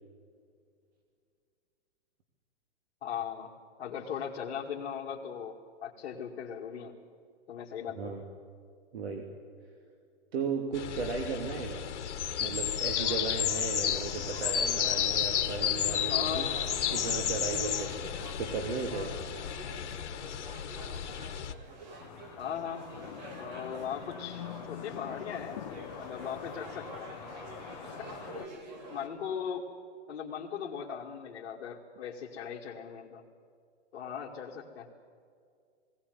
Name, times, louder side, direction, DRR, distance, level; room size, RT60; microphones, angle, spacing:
voice 1, 3.0-3.5 3.8-5.6 5.8-6.9 7.5-8.3 16.1-16.6 22.4-22.9 23.4-25.6 26.0-27.1 27.8-28.3 28.9-29.7 30.1-33.2 33.9-34.9, left 8 dB, 65° left, -5 dB, 2.5 m, -38 dB
voice 2, 8.9-9.3 10.3-11.9 12.4-16.5 16.9-19.2, right 4 dB, 60° right, 4 dB, 2.8 m, -35 dB
sound 1, 10.7-21.5, left 9 dB, 85° left, 1.7 m, -32 dB
sound 2, 13.0-29.1, right 1 dB, 40° right, 3.1 m, -47 dB
sound 3, 22.0-28.5, left 12 dB, 30° left, 0.8 m, -45 dB
20.5 x 18.0 x 9.5 m, 2.2 s
hypercardioid pair, 175°, 35 cm